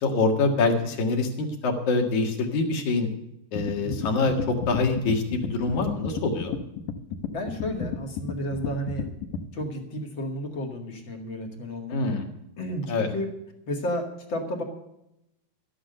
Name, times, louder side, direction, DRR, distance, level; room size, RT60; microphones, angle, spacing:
voice 1, 0.0-3.1 3.5-6.5 11.9-12.2 12.9-13.1, left 3 dB, 55° left, 4 dB, 2.8 m, -25 dB
sound 1, 3.6-9.4, left 6 dB, 70° left, 2.0 m, -33 dB
voice 2, 3.8-4.2 7.3-9.1 9.5-12.1 12.6-13.3 13.7-14.6, equal, 40° left, 3 dB, 2.0 m, -32 dB
13.5 x 10.0 x 6.7 m, 0.84 s
omnidirectional pair, 4.7 m